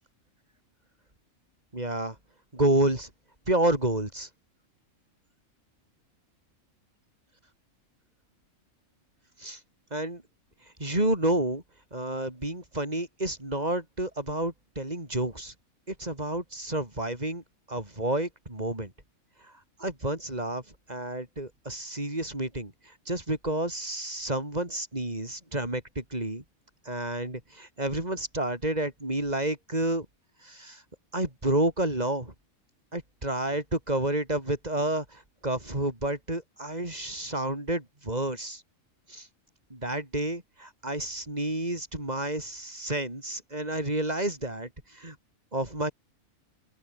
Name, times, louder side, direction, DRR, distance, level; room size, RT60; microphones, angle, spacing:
voice 1, 1.7-2.1 2.5-3.1 3.5-4.3 9.4-9.6 9.9-10.2 10.8-11.6 11.9-15.5 15.9-18.9 19.8-20.6 20.9-22.7 23.1-26.4 26.8-30.1 30.4-30.8 31.1-32.3 32.9-38.6 39.1-39.3 39.7-45.1 45.5-45.9, right 1 dB, 30° right, 5.1 m, -30 dB
open air
omnidirectional pair, 1.4 m